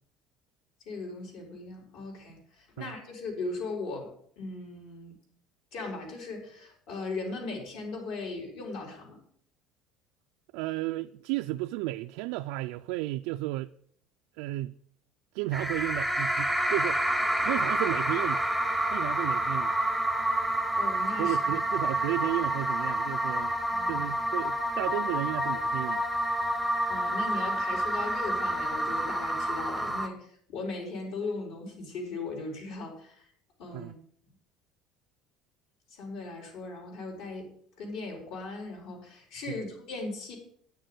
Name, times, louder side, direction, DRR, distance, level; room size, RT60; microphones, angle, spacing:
voice 1, 0.9-5.2 5.7-9.2 20.8-21.5 23.7-24.1 26.9-33.3 33.6-34.0 35.9-37.5 37.8-40.4, left 3 dB, 65° left, 4.2 m, -38 dB
voice 2, 10.5-13.7 14.4-14.8 15.3-17.0 17.4-18.5 18.9-19.7 21.2-23.5 23.9-26.1 33.7-33.9, right 17 dB, 80° right, 0.3 m, -33 dB
sound 1, 15.5-30.1, right 1 dB, ahead, 0.8 m, -28 dB
9.7 x 6.6 x 7.8 m
cardioid pair, 160°, 0 cm